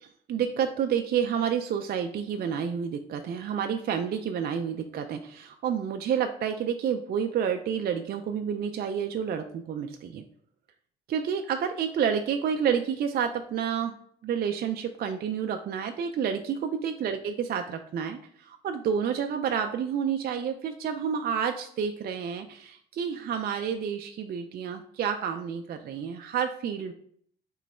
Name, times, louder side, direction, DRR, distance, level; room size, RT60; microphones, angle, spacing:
voice 1, 0.0-10.2 11.1-14.0 14.2-26.9, right 7 dB, 50° right, 5 dB, 0.4 m, -29 dB
3.8 x 3.0 x 4.3 m, 0.62 s
cardioid pair, 90°, 20 cm